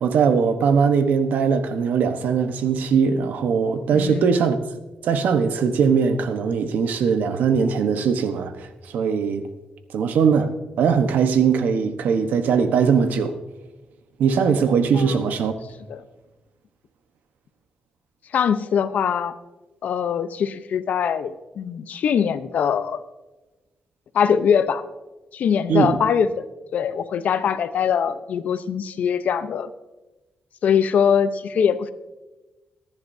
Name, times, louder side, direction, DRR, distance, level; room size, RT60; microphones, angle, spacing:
voice 1, 0.0-4.7 5.0-9.5 9.9-10.5 10.8-13.4 14.2-15.5 25.7-26.0, right 6 dB, 85° right, 1.1 m, -20 dB
voice 2, 3.9-4.3 14.9-15.2 15.9-16.0 18.3-19.3 19.8-23.0 24.1-24.8 25.3-26.4 26.7-29.7 30.6-31.9, left 7 dB, 65° left, 0.8 m, -22 dB
25.0 x 10.5 x 2.7 m
wide cardioid pair, 145°, 3 cm